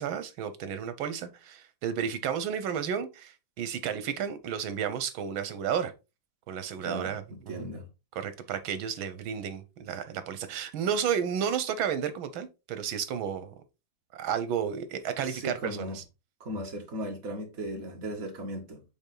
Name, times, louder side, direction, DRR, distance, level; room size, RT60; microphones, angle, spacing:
voice 1, 0.0-5.9 6.5-7.7 8.2-13.5 14.1-16.0, right 8 dB, 85° right, 1.8 m, -32 dB
voice 2, 6.8-7.9 15.2-16.0 16.4-18.8, right 1 dB, 45° right, 2.3 m, -37 dB
7.9 x 3.9 x 3.9 m
omnidirectional pair, 2.1 m